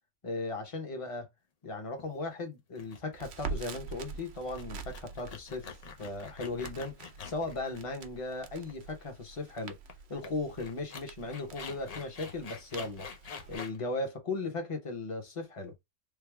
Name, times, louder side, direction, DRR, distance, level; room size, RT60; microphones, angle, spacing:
voice 1, 0.2-1.3 1.6-7.0 7.2-9.8 10.1-13.1 13.5-15.7, left 3 dB, 30° left, 0.8 m, -37 dB
sound 1, 2.0-2.3 2.7-3.0 3.3-3.4 3.7-4.0 4.4-8.3 8.6-8.7 9.9-10.0 10.2-10.3 10.6-13.8, left 5 dB, 85° left, 0.3 m, -46 dB
Crackle, 3.1-13.6, right 5 dB, 60° right, 0.7 m, -45 dB
3.4 x 2.2 x 3.4 m
omnidirectional pair, 1.5 m